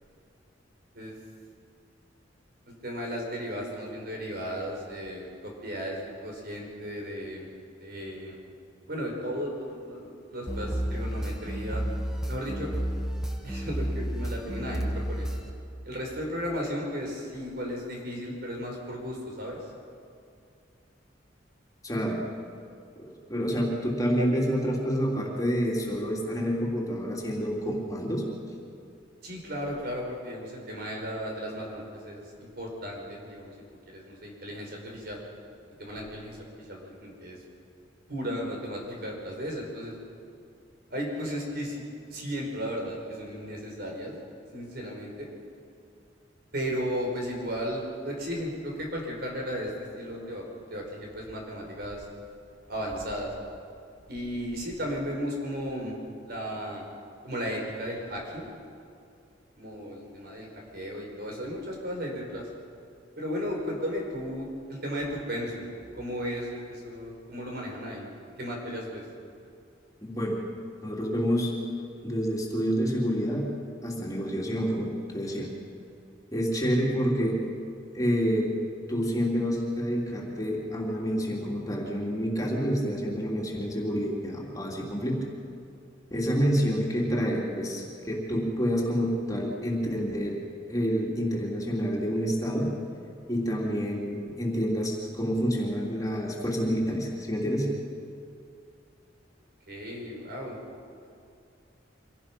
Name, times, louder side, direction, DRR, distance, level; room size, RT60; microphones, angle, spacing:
voice 1, 2.7-7.5 7.8-8.4 8.9-11.8 12.3-12.7 13.4-15.3 15.8-19.7 29.2-33.5 33.9-35.2 35.8-37.4 38.1-40.0 40.9-44.1 44.5-45.3 46.5-50.4 50.7-52.1 52.7-53.3 54.1-55.9 56.2-56.8 57.2-58.5 59.6-62.5 63.2-65.7 65.9-68.1 68.4-69.0 87.6-87.8 99.7-100.6, equal, 60° right, 0 dB, 4.8 m, -35 dB
sound 1, 10.5-15.5, equal, 5° right, 1.5 m, -31 dB
voice 2, 21.8-22.2 23.3-28.2 70.0-70.4 70.8-71.5 72.0-73.5 73.8-75.5 76.3-77.4 77.9-78.5 78.9-85.2 86.1-90.4 90.7-92.7 93.3-97.7, equal, 20° left, -3 dB, 3.1 m, -28 dB
25.5 x 17.0 x 6.0 m, 2.4 s
head